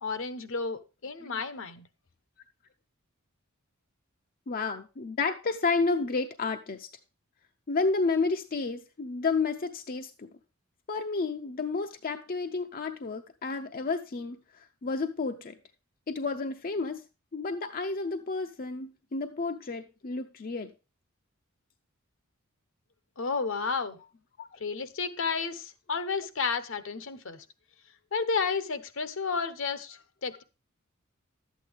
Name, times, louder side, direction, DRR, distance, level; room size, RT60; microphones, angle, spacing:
voice 1, 0.0-1.9 23.2-24.0 24.6-27.4 28.1-30.4, left 5 dB, 65° left, 0.9 m, -32 dB
voice 2, 4.5-6.9 7.7-10.3 10.9-15.5 16.1-17.0 17.3-20.7 24.4-24.6, left 4 dB, 40° left, 0.6 m, -31 dB
12.0 x 8.3 x 3.4 m
head